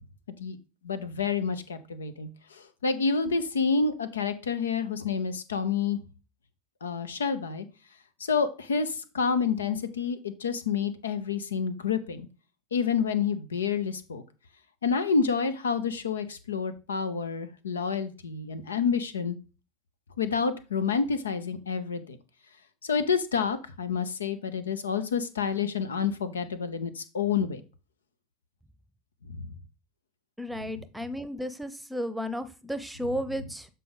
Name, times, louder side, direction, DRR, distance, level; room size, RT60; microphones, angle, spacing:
voice 1, 0.8-6.0 6.8-7.7 8.2-12.3 12.7-14.2 14.8-19.4 20.2-22.2 22.8-27.6 29.3-29.5, left 5 dB, 90° left, 11 dB, 0.7 m, -28 dB
voice 2, 30.4-33.7, equal, 5° right, 12 dB, 0.8 m, -33 dB
7.6 x 4.0 x 3.9 m, 0.32 s
hypercardioid pair, 85°, 0 cm